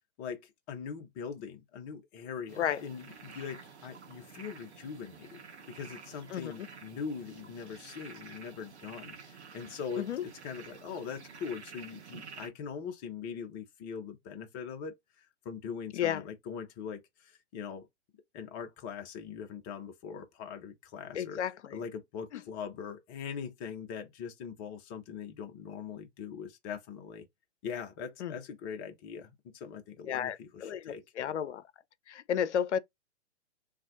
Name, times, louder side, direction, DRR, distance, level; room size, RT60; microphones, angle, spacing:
voice 1, 0.2-17.9 18.3-21.4 21.7-27.2 27.6-31.0, left 6 dB, 20° left, 0.4 m, -42 dB
sound 1, 2.5-12.5, right 5 dB, 70° right, 1.0 m, -50 dB
voice 2, 21.1-21.8 28.2-28.3 30.1-31.6 32.1-32.8, left 9 dB, 80° left, 0.5 m, -32 dB
2.6 x 2.4 x 3.6 m
hypercardioid pair, 125°, 34 cm